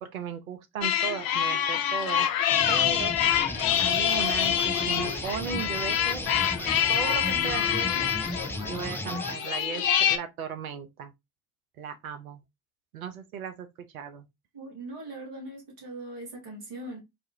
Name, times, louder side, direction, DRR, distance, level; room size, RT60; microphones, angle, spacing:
voice 1, 0.0-2.3 2.7-3.2 3.8-6.2 6.9-11.1 11.8-12.4 12.9-13.7 13.9-14.3, right 7 dB, 85° right, 0.5 m, -36 dB
sound 1, 0.8-10.2, left 10 dB, 55° left, 0.6 m, -26 dB
sound 2, 2.5-9.4, left 1 dB, 5° left, 0.4 m, -36 dB
sound 3, 2.8-9.6, right 1 dB, 50° right, 2.1 m, -42 dB
voice 2, 14.5-17.0, right 2 dB, 70° right, 1.7 m, -40 dB
4.1 x 2.4 x 2.7 m
figure-of-eight pair, 40°, 42 cm